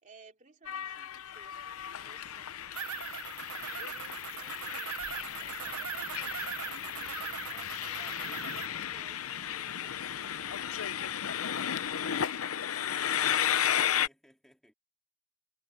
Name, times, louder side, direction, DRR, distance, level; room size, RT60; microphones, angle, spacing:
voice 1, 0.0-1.6 1.9-2.7 3.1-13.5, right 3 dB, 35° right, 2.8 m, -59 dB
Train, 0.7-14.1, left 9 dB, 75° left, 0.7 m, -34 dB
sound 1, 2.7-8.7, right 8 dB, 85° right, 1.0 m, -40 dB
voice 2, 13.7-14.7, equal, ahead, 3.4 m, -64 dB
head